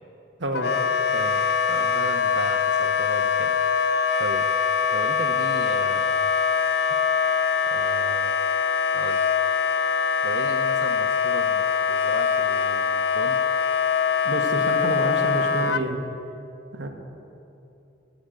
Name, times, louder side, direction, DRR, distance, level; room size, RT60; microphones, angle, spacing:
voice 1, 0.4-0.7 14.2-16.0 16.8-16.9, right 1 dB, 85° right, 3 dB, 1.6 m, -28 dB
Wind instrument woodwind instrument, 0.5-15.8, left 6 dB, 60° left, 0.5 m, -23 dB
voice 2, 1.1-3.6 4.2-4.5 4.9-6.3 7.6-8.4 8.9-9.2 10.2-13.4, right 3 dB, 70° right, 5 dB, 0.6 m, -36 dB
15.5 x 7.0 x 9.3 m, 2.8 s
head